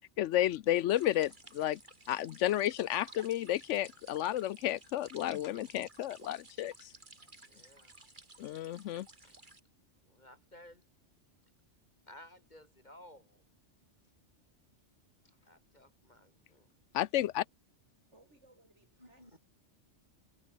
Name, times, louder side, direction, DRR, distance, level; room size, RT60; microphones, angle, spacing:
voice 1, 0.2-1.8 2.1-6.9 8.4-9.1 16.9-17.4, left 13 dB, 85° left, 0.9 m, -32 dB
sound 1, 0.9-9.6, right 2 dB, 40° right, 3.1 m, -56 dB
voice 2, 7.4-7.9 9.2-9.4 10.1-10.8 12.1-13.4 15.2-16.7 19.0-19.3, left 1 dB, 35° left, 6.8 m, -57 dB
voice 3, 18.1-19.4, right 2 dB, 70° right, 6.4 m, -64 dB
omnidirectional pair, 1.2 m